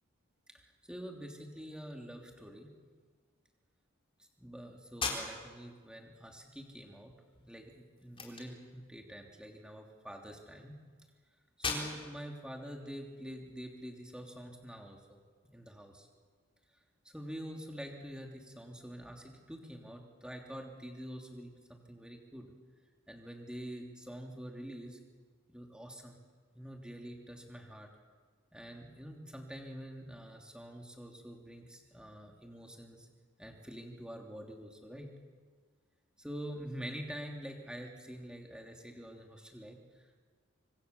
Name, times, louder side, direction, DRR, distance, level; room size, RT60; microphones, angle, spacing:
voice 1, 0.5-2.7 4.2-7.1 7.5-10.8 11.6-15.2 15.5-16.1 17.0-22.5 23.1-25.0 25.5-26.2 26.5-27.9 28.5-33.1 33.4-35.1 36.2-40.2, equal, 5° right, 1 dB, 3.1 m, -46 dB
sound 1, 4.9-13.8, left 4 dB, 25° left, 4.1 m, -44 dB
26.0 x 24.5 x 7.1 m, 1.6 s
head